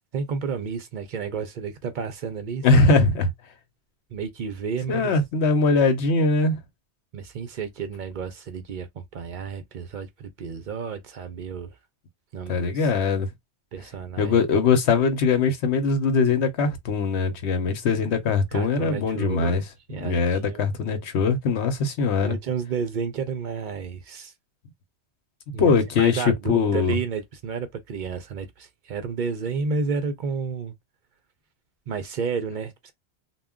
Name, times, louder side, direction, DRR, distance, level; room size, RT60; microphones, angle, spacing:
voice 1, 0.1-2.7 4.1-5.1 7.1-11.7 12.3-12.9 13.7-14.3 18.5-19.6 19.9-20.7 22.2-24.3 25.5-30.7 31.9-32.9, right 5 dB, 55° right, 0.6 m, -31 dB
voice 2, 2.6-3.3 4.9-6.6 12.5-13.3 14.2-19.6 20.0-22.4 25.6-27.0, left 4 dB, 75° left, 1.0 m, -21 dB
2.3 x 2.1 x 3.5 m
omnidirectional pair, 1.1 m